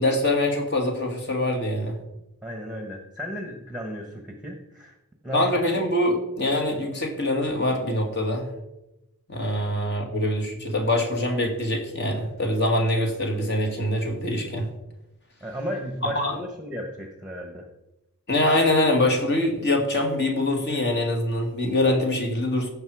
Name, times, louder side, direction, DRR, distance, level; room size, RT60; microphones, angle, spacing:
voice 1, 0.0-2.0 5.3-8.5 9.3-14.7 16.1-16.4 18.3-22.7, left 1 dB, 50° left, 2 dB, 2.3 m, -24 dB
voice 2, 2.4-5.0 5.2-5.5 15.4-17.7, equal, ahead, 4 dB, 1.1 m, -34 dB
16.0 x 5.8 x 4.7 m, 0.91 s
head